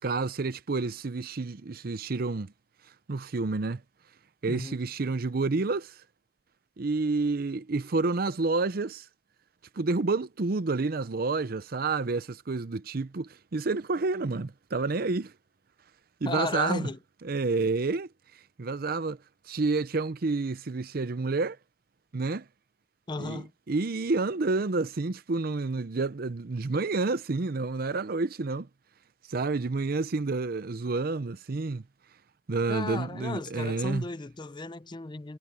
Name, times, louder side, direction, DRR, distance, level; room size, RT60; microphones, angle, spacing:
voice 1, 0.0-2.5 3.1-3.8 4.4-6.0 6.8-9.1 9.8-15.3 16.2-16.9 17.2-18.1 18.6-19.2 19.5-21.6 22.1-22.5 23.2-28.7 29.3-31.8 32.5-34.0, right 3 dB, 55° right, 0.6 m, -29 dB
voice 2, 4.5-4.8 16.3-17.0 23.1-23.5 32.7-35.4, left 3 dB, 25° left, 0.6 m, -34 dB
head